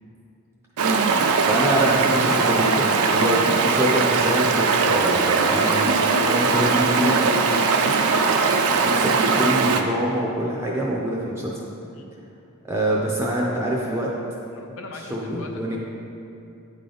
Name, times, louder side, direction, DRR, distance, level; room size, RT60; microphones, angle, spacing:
Stream, 0.8-9.8, right 4 dB, 90° right, 0.4 m, -20 dB
voice 1, 1.5-7.4 8.6-11.5 12.7-14.1 15.1-15.8, right 1 dB, 10° right, -4 dB, 0.5 m, -25 dB
voice 2, 11.9-12.3 14.5-15.8, left 2 dB, 70° left, 3 dB, 0.6 m, -40 dB
9.4 x 3.8 x 3.4 m, 2.6 s
head